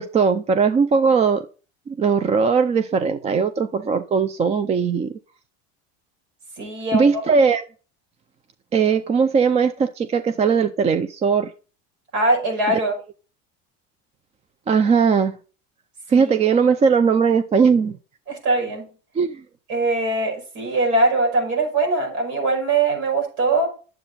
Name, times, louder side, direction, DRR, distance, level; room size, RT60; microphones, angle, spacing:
voice 1, 0.0-1.5 1.9-5.1 6.9-7.6 8.7-11.5 12.7-12.8 14.7-15.3 16.1-18.0 19.2-19.4, right 5 dB, 20° right, 0.4 m, -19 dB
voice 2, 6.6-7.2 12.1-12.9 16.1-16.3 18.3-18.9 19.7-23.7, right 2 dB, 85° right, 5.5 m, -21 dB
9.8 x 7.7 x 4.1 m
cardioid pair, 140°, 35 cm